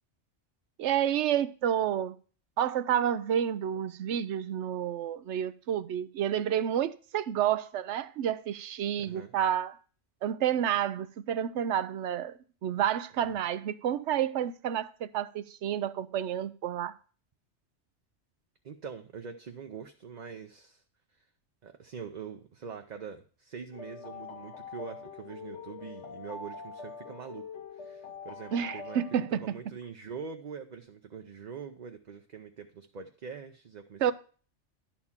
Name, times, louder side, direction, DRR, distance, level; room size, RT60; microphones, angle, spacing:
voice 1, 0.8-2.1 2.6-9.8 10.2-16.9 28.5-29.4 34.0-34.1, right 10 dB, 80° right, 0.9 m, -30 dB
voice 2, 9.0-9.3 18.6-20.8 21.1-21.2 21.6-29.0 29.3-34.1, right 6 dB, 45° right, 0.7 m, -44 dB
sound 1, 23.7-29.4, left 5 dB, 75° left, 1.3 m, -44 dB
11.0 x 4.4 x 7.1 m
omnidirectional pair, 1.2 m